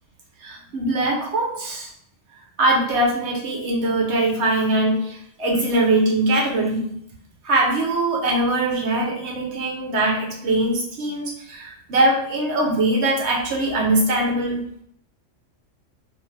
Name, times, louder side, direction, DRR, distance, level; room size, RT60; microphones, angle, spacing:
voice 1, 0.4-1.9 2.6-6.9 7.4-14.6, right 2 dB, 65° right, -1 dB, 1.0 m, -22 dB
2.8 x 2.5 x 3.1 m, 0.70 s
omnidirectional pair, 1.3 m